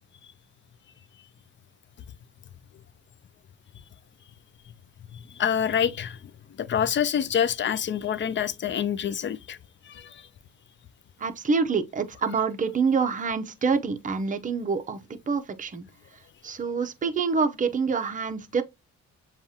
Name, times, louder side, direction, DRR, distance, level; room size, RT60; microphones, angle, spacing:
voice 1, 5.4-6.2 6.6-9.6 9.9-10.2, left 8 dB, 40° left, 0.5 m, -26 dB
voice 2, 11.2-15.0 15.3-15.8 16.4-18.6, right 5 dB, 25° right, 0.6 m, -26 dB
7.0 x 2.4 x 2.7 m
cardioid pair, 90°, 30 cm